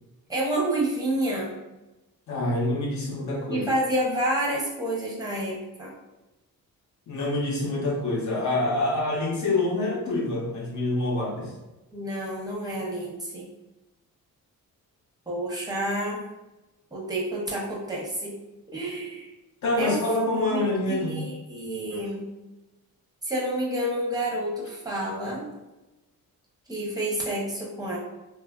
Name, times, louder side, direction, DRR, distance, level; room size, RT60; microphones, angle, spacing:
voice 1, 0.3-1.6 3.5-5.9 11.9-13.5 15.3-16.2 16.9-18.3 18.7-19.3 19.8-20.0 20.5-22.3 23.2-25.5 26.7-28.0, right 1 dB, 10° right, -5 dB, 0.6 m, -29 dB
voice 2, 2.3-3.7 7.1-11.5 19.6-21.2, left 2 dB, 50° left, -1 dB, 0.8 m, -26 dB
3.2 x 2.3 x 2.2 m, 1.0 s
cardioid pair, 155°, 36 cm